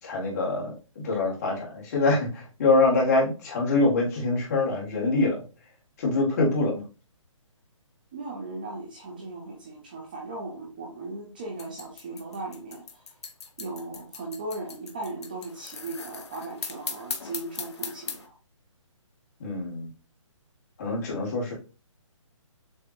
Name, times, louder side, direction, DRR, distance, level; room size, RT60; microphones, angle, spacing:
voice 1, 0.0-5.4 6.0-6.8 19.4-19.9 20.8-21.5, left 2 dB, 30° left, -3 dB, 1.6 m, -25 dB
voice 2, 8.1-13.0 13.6-18.4, right 2 dB, 15° right, 0 dB, 0.4 m, -37 dB
sound 1, 11.6-18.3, left 5 dB, 55° left, 0.8 m, -38 dB
6.8 x 2.6 x 2.4 m, 0.33 s
hypercardioid pair, 170°, 17 cm